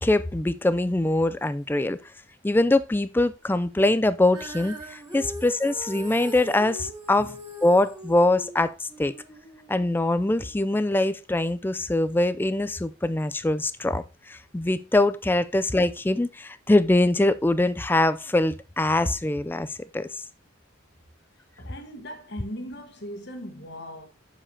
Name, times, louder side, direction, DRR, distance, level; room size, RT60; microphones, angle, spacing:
voice 1, 0.0-2.0 2.4-7.3 7.6-9.1 9.7-20.2, left 2 dB, 10° left, 0.3 m, -23 dB
Female singing, 4.3-10.6, equal, 15° right, 2.2 m, -41 dB
voice 2, 21.6-24.1, equal, 60° left, 1.3 m, -38 dB
7.4 x 6.9 x 2.8 m
head